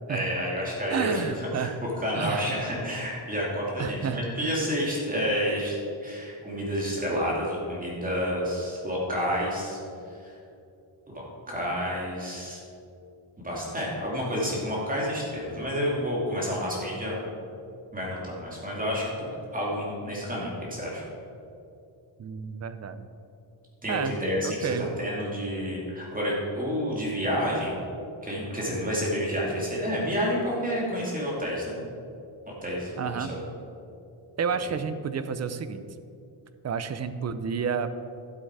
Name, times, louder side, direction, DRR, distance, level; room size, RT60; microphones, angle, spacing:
voice 1, 0.1-5.8 6.0-9.8 10.2-10.3 11.1-12.6 13.4-17.2 17.9-19.1 19.5-21.0 23.8-24.7 25.0-27.8 28.2-31.8 32.6-33.4, equal, 15° right, -5 dB, 2.5 m, -29 dB
voice 2, 0.9-1.7 2.1-2.6 3.8-4.2 22.2-23.1 23.9-24.9 33.0-33.4 34.4-35.8 36.6-37.9, right 6 dB, 35° right, 11 dB, 0.5 m, -30 dB
12.0 x 7.8 x 4.8 m, 2.6 s
wide cardioid pair, 155°, 48 cm